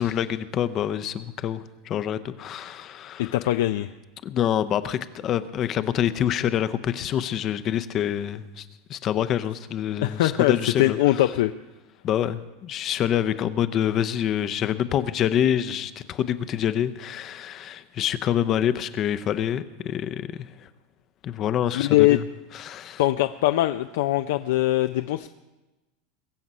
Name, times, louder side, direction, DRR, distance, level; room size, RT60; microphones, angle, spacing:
voice 1, 0.0-3.3 4.2-11.2 12.0-20.7 21.2-22.3 22.5-23.0, left 10 dB, 30° left, 13 dB, 0.6 m, -26 dB
voice 2, 3.2-3.9 10.0-11.5 21.7-22.2 23.0-25.3, left 15 dB, 75° left, 9 dB, 0.5 m, -22 dB
22.0 x 7.5 x 5.5 m, 1.1 s
supercardioid pair, 155°, 0 cm